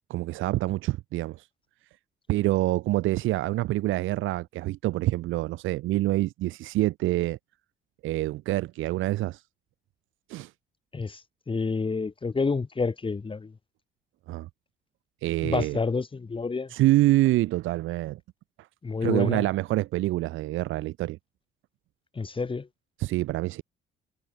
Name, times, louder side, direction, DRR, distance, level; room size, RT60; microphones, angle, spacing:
voice 1, 0.1-1.4 2.3-7.4 8.0-9.4 10.3-10.5 14.3-14.5 15.2-15.8 16.7-18.2 19.0-21.2 23.0-23.6, right 17 dB, 85° right, 0.6 m, -26 dB
voice 2, 11.5-13.5 15.4-16.7 18.8-19.4 22.1-22.7, left 4 dB, 25° left, 1.4 m, -28 dB
cardioid pair, 90°, 20 cm